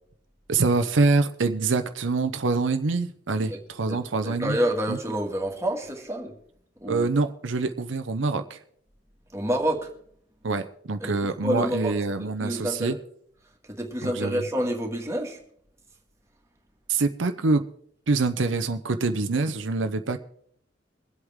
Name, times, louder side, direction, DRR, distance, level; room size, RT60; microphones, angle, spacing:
voice 1, 0.5-4.6 4.9-5.0 6.9-8.6 10.4-13.0 14.0-14.4 16.9-17.6 18.1-20.2, right 3 dB, 85° right, 8 dB, 0.7 m, -25 dB
voice 2, 4.2-6.3 6.8-7.1 9.3-9.9 11.0-11.1 11.4-13.0 13.7-15.4, equal, 15° right, 1 dB, 2.0 m, -28 dB
23.5 x 8.0 x 3.6 m, 0.67 s
head